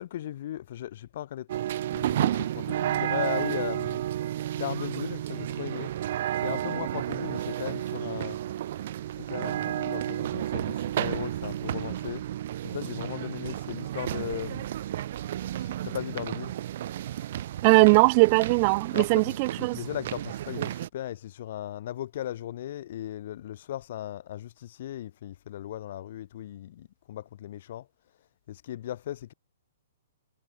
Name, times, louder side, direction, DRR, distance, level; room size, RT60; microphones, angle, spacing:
voice 1, 0.0-1.6 1.9-4.0 4.5-5.9 6.3-8.4 9.2-12.2 12.6-14.7 15.6-16.5 18.9-27.9 28.5-29.3, left 12 dB, 45° left, 6.5 m, -37 dB
sound 1, 1.5-20.9, right 12 dB, 45° right, 2.4 m, -32 dB
voice 2, 17.6-19.8, right 32 dB, 30° right, 1.1 m, -20 dB
hypercardioid pair, 170°, 0 cm